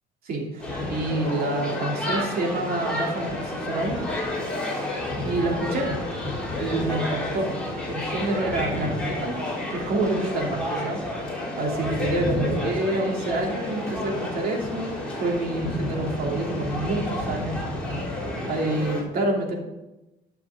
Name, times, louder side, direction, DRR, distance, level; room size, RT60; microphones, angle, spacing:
voice 1, 0.3-4.0 5.2-5.9 6.6-7.5 7.8-9.4 9.7-11.0 11.6-17.6 18.5-19.6, right 2 dB, 65° right, 0 dB, 2.8 m, -27 dB
sound 1, 0.6-19.0, left 1 dB, 5° left, 4.0 m, -30 dB
12.0 x 6.8 x 4.9 m, 0.97 s
cardioid pair, 110°, 17 cm